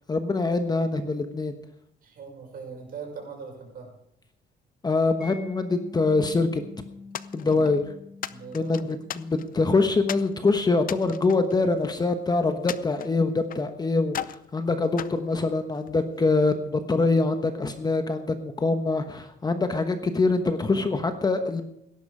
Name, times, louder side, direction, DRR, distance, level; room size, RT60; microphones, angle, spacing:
voice 1, 0.1-1.5 4.8-6.6 7.3-7.8 8.5-21.6, left 3 dB, 20° left, 7 dB, 1.1 m, -24 dB
voice 2, 2.0-3.9 7.4-7.8 8.3-8.8, right 5 dB, 50° right, 1 dB, 6.1 m, -40 dB
Mallet percussion, 5.2-12.0, left 4 dB, ahead, 5.0 m, -46 dB
sound 1, 7.1-7.8 8.2-9.6 10.1-10.3 10.8-12.1 12.7-13.7 14.1-14.5 15.0-16.0, left 10 dB, 45° left, 0.7 m, -37 dB
17.5 x 11.0 x 4.9 m, 0.79 s
cardioid pair, 135°, 19 cm